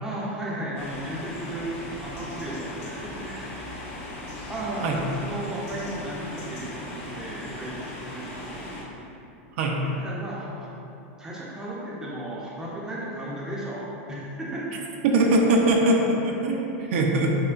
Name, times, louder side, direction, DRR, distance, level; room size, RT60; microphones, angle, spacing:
voice 1, 0.0-3.4 4.5-8.7 10.0-10.7 11.2-14.7, right 1 dB, 10° right, -5 dB, 0.5 m, -35 dB
sound 1, 0.8-8.8, left 1 dB, 75° left, 0.8 m, -38 dB
voice 2, 15.0-17.4, right 2 dB, 65° right, 0 dB, 0.5 m, -21 dB
5.4 x 2.1 x 2.5 m, 2.9 s
supercardioid pair, 150°, 7 cm